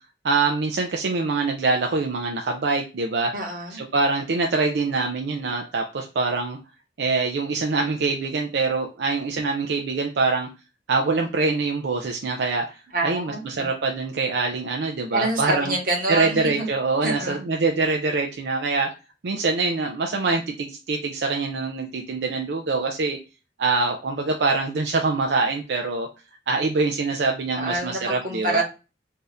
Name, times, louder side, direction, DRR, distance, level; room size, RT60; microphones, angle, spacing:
voice 1, 0.2-3.3 3.7-6.6 7.0-10.5 10.9-15.7 16.1-18.9 19.2-23.2 23.6-26.1 26.5-28.6, right 3 dB, 75° right, 3 dB, 0.5 m, -24 dB
voice 2, 3.3-3.8 12.9-13.7 15.1-16.7 17.0-17.4 27.5-28.6, right 2 dB, 50° right, 0 dB, 1.1 m, -27 dB
2.7 x 2.5 x 4.0 m, 0.30 s
head